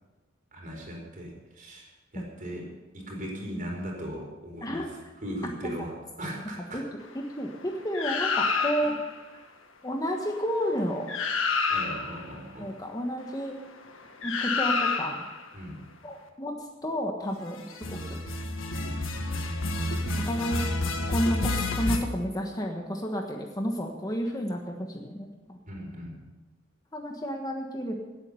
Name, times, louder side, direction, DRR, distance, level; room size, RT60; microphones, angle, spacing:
voice 1, 0.5-2.6 2.9-5.9 6.2-6.8 11.7-12.7 15.5-15.8 18.9-19.3 25.7-26.3, equal, 40° right, 0 dB, 4.5 m, -38 dB
voice 2, 7.1-8.9 9.8-11.1 12.6-13.6 14.2-15.3 16.0-16.5 16.8-18.2 20.2-20.6 21.1-25.6 26.9-27.9, equal, 20° left, 2 dB, 1.3 m, -31 dB
sound 1, 7.9-9.1 10.7-10.8 11.1-12.2 14.2-15.4 17.7-22.0, left 3 dB, 75° left, 1.6 m, -29 dB
17.0 x 8.7 x 6.9 m, 1.2 s
head